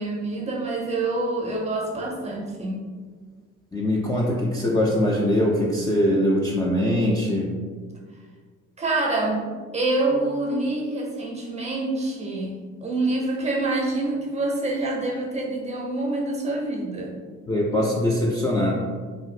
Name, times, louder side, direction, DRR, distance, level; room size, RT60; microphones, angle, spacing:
voice 1, 0.0-2.9 8.8-17.2, right 2 dB, 20° right, 0 dB, 0.6 m, -26 dB
voice 2, 3.7-7.6 17.5-18.7, left 1 dB, 10° left, -4 dB, 0.3 m, -22 dB
2.6 x 2.4 x 3.1 m, 1.5 s
cardioid pair, 90°, 30 cm